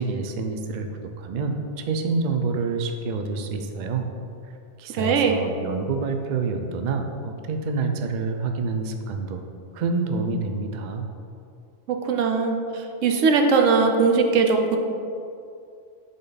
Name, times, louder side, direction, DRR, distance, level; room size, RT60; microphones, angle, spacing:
voice 1, 0.0-4.1 4.8-9.4 9.7-11.1, right 4 dB, 55° right, 5 dB, 0.5 m, -27 dB
voice 2, 4.9-5.4 11.9-14.8, right 4 dB, 85° right, 4 dB, 1.0 m, -20 dB
8.9 x 3.8 x 3.9 m, 2.5 s
omnidirectional pair, 1.3 m